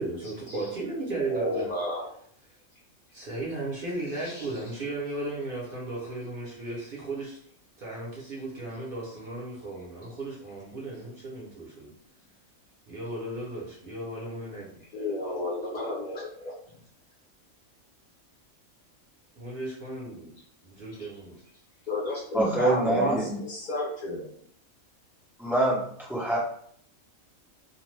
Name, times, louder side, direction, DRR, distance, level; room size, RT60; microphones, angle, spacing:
voice 1, 0.0-1.7 3.1-7.4 7.8-11.9 12.9-14.8 19.4-20.3 20.6-21.4, right 2 dB, 50° right, -4 dB, 0.8 m, -35 dB
voice 2, 1.3-2.1 4.2-4.5 14.9-16.5 21.0-21.1 21.9-24.4, left 1 dB, 40° left, -3 dB, 0.7 m, -32 dB
voice 3, 22.3-23.4 25.4-26.4, right 1 dB, 5° right, -6 dB, 0.4 m, -25 dB
2.5 x 2.2 x 3.2 m, 0.64 s
omnidirectional pair, 1.5 m